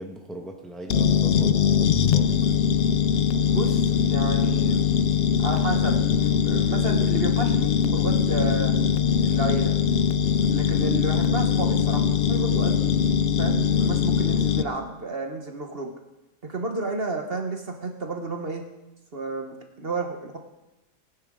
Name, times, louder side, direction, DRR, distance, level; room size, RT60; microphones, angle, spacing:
voice 1, 0.0-2.3, right 1 dB, ahead, 2 dB, 1.2 m, -39 dB
sound 1, 0.9-14.6, left 7 dB, 60° left, 0.6 m, -22 dB
voice 2, 3.5-4.8 5.4-8.8 9.2-9.8 10.5-12.9 13.4-15.9 16.4-18.6 19.1-20.4, right 3 dB, 45° right, 3 dB, 1.4 m, -31 dB
18.5 x 10.0 x 3.7 m, 0.97 s
omnidirectional pair, 1.4 m